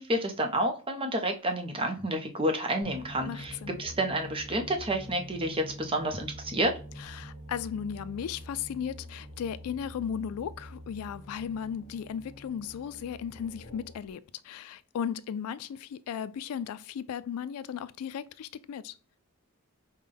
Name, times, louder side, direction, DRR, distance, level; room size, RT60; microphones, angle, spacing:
voice 1, 0.0-6.7, right 1 dB, 25° right, 0.7 m, -30 dB
sound 1, 2.8-14.1, equal, 30° left, 1.3 m, -46 dB
voice 2, 3.3-3.8 7.0-18.9, left 8 dB, 75° left, 0.3 m, -36 dB
5.2 x 2.2 x 3.4 m
head